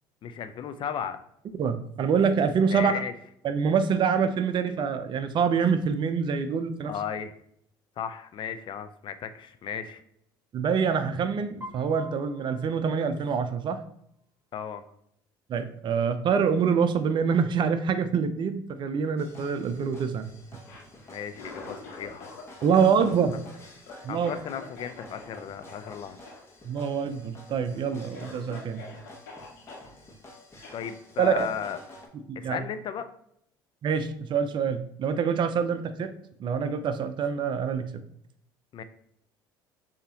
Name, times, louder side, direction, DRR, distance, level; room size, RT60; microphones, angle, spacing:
voice 1, 0.2-1.2 2.7-3.1 6.8-7.3 8.0-10.0 14.5-14.8 21.1-22.4 24.1-26.2 29.8-29.9 30.7-31.8 32.4-33.1 38.7-38.8, left 8 dB, 50° left, 11 dB, 0.5 m, -35 dB
voice 2, 1.6-2.9 3.4-6.9 10.5-13.8 15.5-20.3 22.6-23.3 24.0-24.3 26.6-28.8 31.2-31.5 32.3-32.6 33.8-36.1 36.4-38.0, right 6 dB, 45° right, 10 dB, 0.5 m, -25 dB
Piano, 11.6-13.6, equal, 20° right, 1.2 m, -47 dB
sound 1, 19.2-32.1, left 1 dB, 25° left, 1.3 m, -50 dB
Cough, 20.5-22.4 22.7-25.4 25.7-25.9 26.2-26.4 26.7-27.2 27.7-27.8 28.1-29.9 30.6-30.8, left 3 dB, 85° left, 1.4 m, -45 dB
6.6 x 2.9 x 2.8 m, 0.72 s
hypercardioid pair, 70°, 11 cm